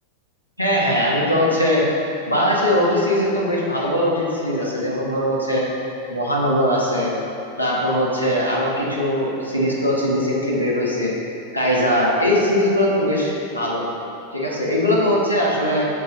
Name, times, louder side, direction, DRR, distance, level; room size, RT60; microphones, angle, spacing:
voice 1, 0.6-1.9 2.2-5.7 6.1-7.1 7.6-11.1 11.5-13.9 14.3-15.9, equal, 90° left, -5 dB, 1.2 m, -20 dB
6.8 x 4.6 x 4.3 m, 2.9 s
figure-of-eight pair, 90°, 0 cm